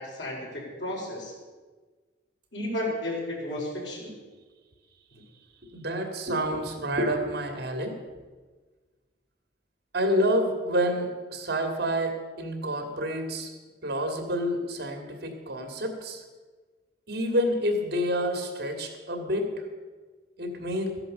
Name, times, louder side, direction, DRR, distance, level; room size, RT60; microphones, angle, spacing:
voice 1, 0.0-1.3 2.5-4.2, left 1 dB, 80° left, -2 dB, 4.9 m, -33 dB
voice 2, 5.7-8.0 9.9-13.5 13.8-16.2 17.1-19.5 20.4-21.0, equal, 60° right, 5 dB, 2.5 m, -28 dB
14.5 x 11.0 x 6.8 m, 1.4 s
head